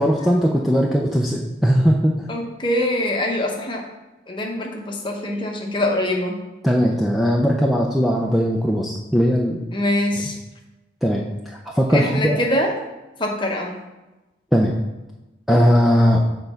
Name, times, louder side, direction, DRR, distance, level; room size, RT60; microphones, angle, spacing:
voice 1, 0.0-2.3 6.6-9.6 10.2-10.3 11.0-12.6 14.5-14.8 15.5-16.3, equal, ahead, -2 dB, 0.4 m, -19 dB
voice 2, 2.3-3.8 4.3-6.4 9.7-10.3 11.9-12.7 13.2-13.8, left 1 dB, 25° left, 1 dB, 0.9 m, -23 dB
6.9 x 3.9 x 5.6 m, 1.1 s
head